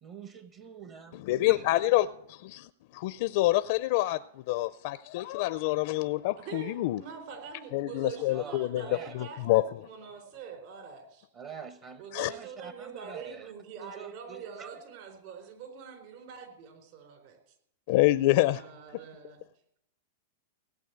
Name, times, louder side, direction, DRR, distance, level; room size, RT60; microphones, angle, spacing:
voice 1, 0.0-1.6 8.2-9.1 11.3-13.5 13.8-14.7, right 6 dB, 35° right, 1.0 m, -46 dB
voice 2, 1.1-7.0 7.7-8.8 9.1-9.7 12.1-12.3 17.9-18.6 18.9-19.0, left 17 dB, 55° left, 0.4 m, -27 dB
voice 3, 6.4-11.3 12.0-17.4 18.5-19.4, right 6 dB, 55° right, 4.1 m, -44 dB
17.0 x 8.2 x 8.0 m
hypercardioid pair, 140°, 0 cm